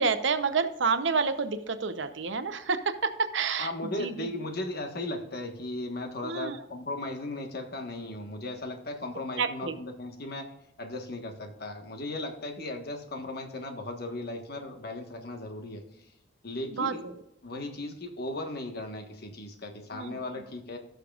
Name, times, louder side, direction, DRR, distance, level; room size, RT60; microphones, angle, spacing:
voice 1, 0.0-4.3 6.2-6.6 9.4-9.8 16.8-17.1 19.9-20.2, right 5 dB, 70° right, 10 dB, 0.8 m, -29 dB
voice 2, 3.6-10.5 10.8-15.8 16.4-17.0 17.4-20.8, left 2 dB, 55° left, 4 dB, 1.5 m, -36 dB
17.5 x 6.6 x 2.5 m, 0.86 s
head